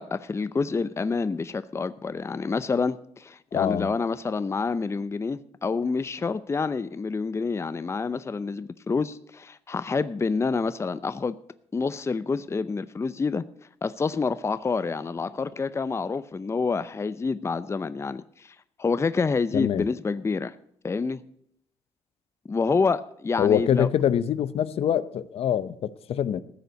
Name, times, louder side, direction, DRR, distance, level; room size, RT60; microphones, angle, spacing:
voice 1, 0.0-11.3 11.7-13.4 13.8-20.5 20.8-21.2 22.5-23.9, left 4 dB, 25° left, 14 dB, 0.6 m, -28 dB
voice 2, 3.5-3.9 19.5-19.8 23.4-26.4, left 9 dB, 65° left, 15 dB, 0.8 m, -24 dB
15.0 x 6.7 x 9.2 m, 0.70 s
cardioid pair, 90°, 11 cm